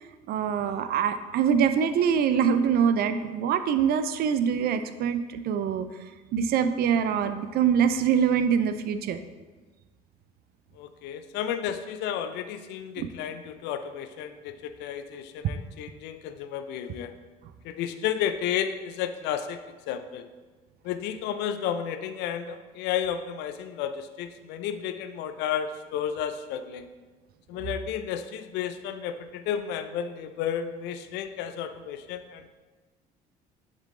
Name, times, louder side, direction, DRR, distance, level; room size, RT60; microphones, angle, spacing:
voice 1, 0.3-9.2 13.0-13.1, right 7 dB, 55° right, 10 dB, 0.5 m, -24 dB
voice 2, 10.7-17.1 17.6-19.6 19.9-20.3 20.8-26.9 27.5-32.5, left 9 dB, 65° left, 10 dB, 0.5 m, -32 dB
7.1 x 3.8 x 3.7 m, 1.3 s
hypercardioid pair, 70°, 19 cm